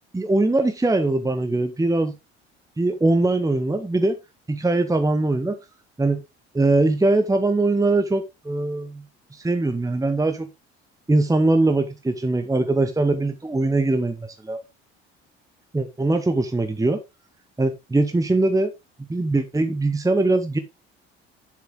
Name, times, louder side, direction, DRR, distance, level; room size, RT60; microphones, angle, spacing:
voice 1, 0.1-2.1 2.8-4.2 4.5-5.6 6.0-6.2 6.5-9.0 9.3-10.5 11.1-14.6 15.7-17.0 17.6-18.7 19.0-20.6, right 2 dB, 10° right, 1.0 m, -21 dB
7.7 x 7.1 x 3.7 m
hypercardioid pair, 60°, 32 cm